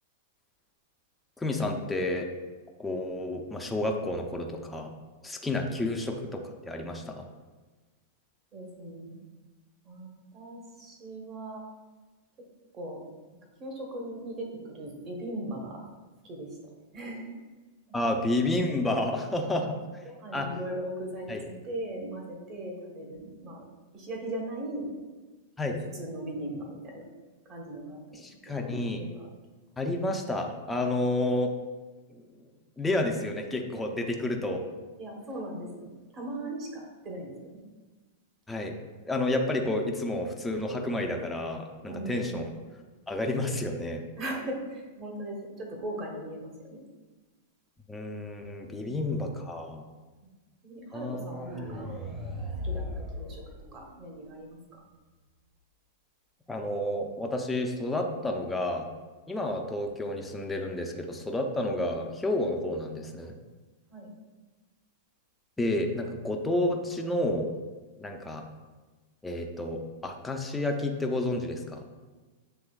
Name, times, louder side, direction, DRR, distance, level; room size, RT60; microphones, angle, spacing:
voice 1, 1.4-2.3 2.8-4.9 5.2-7.2 17.9-19.7 20.3-20.5 21.3-21.4 25.6-25.8 28.2-29.0 29.8-31.5 32.1-32.2 32.8-34.6 38.5-38.7 39.0-42.4 43.1-44.0 47.9-49.8 50.9-51.5 56.5-58.9 59.3-63.3 65.6-67.5 68.0-68.4 69.2-71.8, left 1 dB, 10° left, 2 dB, 0.5 m, -30 dB
voice 2, 8.5-9.2 9.8-11.6 12.7-13.1 13.6-15.8 16.2-16.5 16.9-17.3 17.9-18.1 19.4-19.6 20.0-23.7 23.9-24.9 25.9-27.1 27.4-29.3 35.0-37.6 41.9-42.3 44.2-46.8 48.8-49.1 50.2-50.3 50.6-51.9 52.6-53.4 53.7-54.8 63.9-64.1, right 1 dB, 35° right, 0 dB, 1.2 m, -39 dB
sound 1, 51.3-54.3, left 1 dB, 15° right, 0.9 m, -37 dB
7.1 x 3.0 x 2.3 m, 1.3 s
hypercardioid pair, 115°, 0 cm